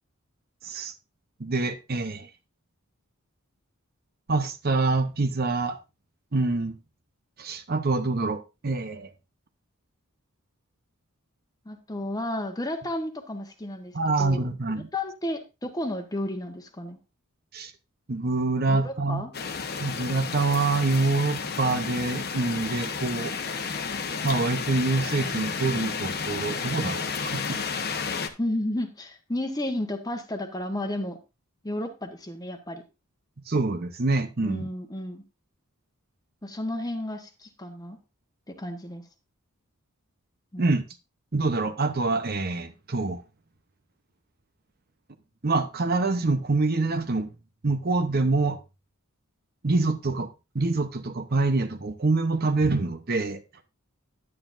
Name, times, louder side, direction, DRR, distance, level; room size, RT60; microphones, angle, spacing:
voice 1, 0.6-0.9 1.4-2.3 4.3-5.8 6.3-6.7 7.4-9.1 13.9-14.9 17.5-17.7 18.1-19.2 19.8-23.3 24.2-27.6 33.5-34.7 40.6-40.8 41.3-43.2 45.4-47.3 47.6-48.6 49.6-50.3 50.5-53.4, right 3 dB, 45° right, 0.9 m, -26 dB
voice 2, 11.6-13.9 14.2-14.5 14.9-17.0 18.7-19.3 28.4-31.2 31.6-32.8 34.4-35.2 36.4-38.0 38.5-39.0 40.5-40.7, left 1 dB, 15° left, 1.2 m, -32 dB
sound 1, 19.3-28.3, left 5 dB, 45° left, 1.0 m, -32 dB
11.0 x 9.6 x 2.6 m
head